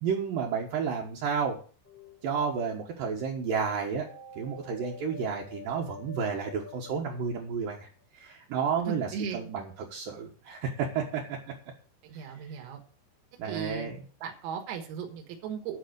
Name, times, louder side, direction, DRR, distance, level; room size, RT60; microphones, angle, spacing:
voice 1, 0.0-1.6 2.2-4.1 4.4-7.9 8.1-9.1 9.3-11.4 13.4-14.0, right 6 dB, 70° right, -2 dB, 2.3 m, -31 dB
sound 1, 1.8-2.6 4.0-7.8, left 4 dB, 5° left, 1.4 m, -48 dB
voice 2, 8.9-9.5 12.0-12.8 13.4-13.9 14.2-15.8, right 7 dB, 85° right, 3 dB, 4.3 m, -37 dB
11.5 x 5.6 x 7.9 m, 0.41 s
omnidirectional pair, 6.0 m